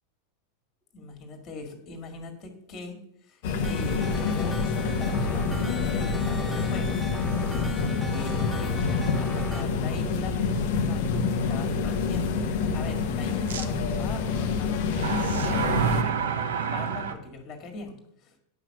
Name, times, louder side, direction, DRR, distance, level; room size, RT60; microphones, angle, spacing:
voice 1, 0.9-7.0 7.8-18.4, left 3 dB, 30° left, 4 dB, 2.1 m, -41 dB
sound 1, 3.4-16.0, left 4 dB, 50° left, 1.0 m, -27 dB
sound 2, 3.6-9.6, equal, ahead, 0.8 m, -39 dB
sound 3, 8.2-8.3 8.9-9.0 13.5-13.6 14.9-17.1, right 7 dB, 60° right, 0.9 m, -28 dB
9.6 x 5.8 x 6.8 m, 0.74 s
figure-of-eight pair, 90°, 0 cm